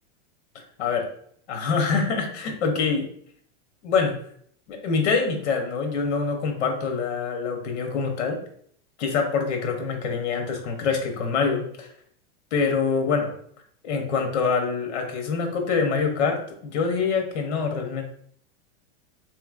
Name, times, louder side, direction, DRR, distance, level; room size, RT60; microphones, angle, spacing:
voice 1, 1.5-3.1 3.8-4.1 4.7-8.4 9.0-11.9 12.5-13.3 13.8-18.0, left 5 dB, 65° left, 3 dB, 1.0 m, -25 dB
3.8 x 3.1 x 2.4 m, 0.64 s
supercardioid pair, 170°, 37 cm